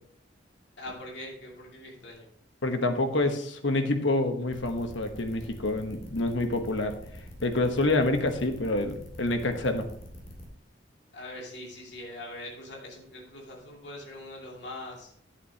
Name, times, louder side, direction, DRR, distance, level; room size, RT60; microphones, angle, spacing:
voice 1, 0.8-2.3 11.1-15.1, left 1 dB, 65° left, -2 dB, 2.5 m, -42 dB
voice 2, 2.6-6.9 7.4-9.8, left 2 dB, 90° left, 6 dB, 1.2 m, -27 dB
sound 1, 4.5-10.5, equal, 35° left, 2.3 m, -45 dB
11.5 x 8.3 x 2.9 m, 0.64 s
head